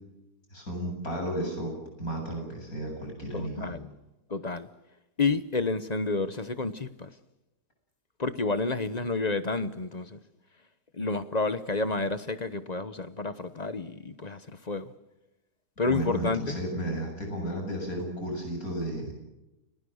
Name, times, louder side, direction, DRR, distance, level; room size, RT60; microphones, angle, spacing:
voice 1, 0.5-3.8 15.9-19.1, right 1 dB, 60° left, 8.5 m, -33 dB
voice 2, 3.3-3.9 4.3-4.7 5.2-7.1 8.2-10.2 11.0-14.9 15.8-16.5, left 3 dB, 30° left, 0.9 m, -30 dB
29.5 x 19.5 x 6.4 m
omnidirectional pair, 1.7 m